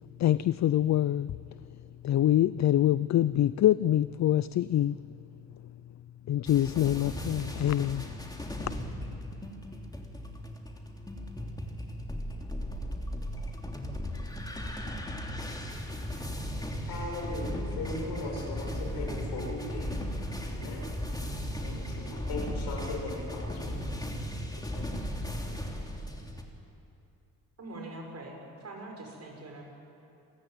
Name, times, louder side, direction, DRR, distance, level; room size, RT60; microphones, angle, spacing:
voice 1, 0.2-1.4 2.0-5.0 6.3-8.1 8.6-8.7, left 12 dB, 50° left, 17 dB, 0.5 m, -25 dB
sound 1, 6.5-26.4, equal, 10° left, 3.2 m, -36 dB
voice 2, 16.9-19.9 20.5-20.9 21.6-23.8 24.5-25.0, left 2 dB, 85° left, 0 dB, 6.6 m, -38 dB
voice 3, 27.6-29.6, right 2 dB, 45° right, 1 dB, 6.6 m, -43 dB
27.5 x 15.0 x 9.3 m, 2.8 s
cardioid pair, 75°, 37 cm